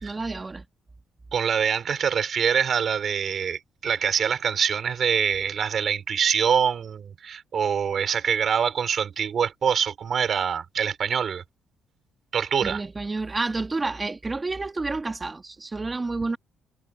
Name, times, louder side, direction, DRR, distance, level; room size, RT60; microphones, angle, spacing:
voice 1, 0.0-0.6 12.6-16.4, right 3 dB, 25° right, 1.5 m, -29 dB
voice 2, 1.3-11.4 12.3-12.8, right 7 dB, 55° right, 4.7 m, -24 dB
cardioid pair, 90°, 0 cm